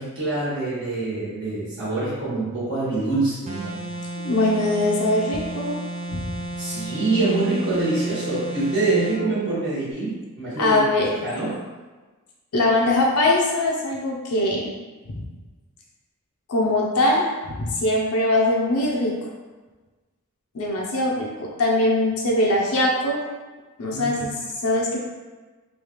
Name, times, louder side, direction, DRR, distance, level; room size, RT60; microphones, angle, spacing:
voice 1, 0.0-3.9 6.6-10.8 11.1-11.6 23.9-24.3, right 2 dB, 55° right, -10 dB, 1.2 m, -25 dB
sound 1, 3.5-9.2, right 1 dB, 30° right, 0.6 m, -33 dB
voice 2, 4.2-5.8 6.1-6.3 10.6-11.1 12.5-14.7 15.0-15.2 16.5-17.3 17.6-19.1 20.5-23.2 23.8-24.3 24.6-25.0, left 1 dB, 80° left, -3 dB, 0.6 m, -22 dB
3.3 x 2.3 x 3.0 m, 1.3 s
head